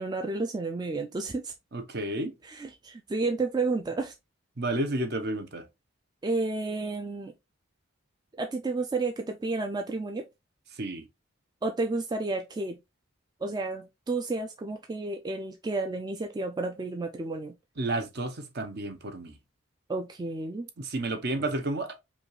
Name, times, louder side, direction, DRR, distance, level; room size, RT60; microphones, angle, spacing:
voice 1, 0.0-1.5 2.4-4.1 6.2-7.3 8.4-10.2 11.6-12.8 13.4-17.5 19.9-20.7, right 3 dB, 20° right, 0.3 m, -31 dB
voice 2, 1.7-2.3 4.6-5.7 10.7-11.1 17.8-19.4 20.8-22.0, right 2 dB, 50° right, 0.8 m, -31 dB
5.2 x 2.4 x 3.1 m
head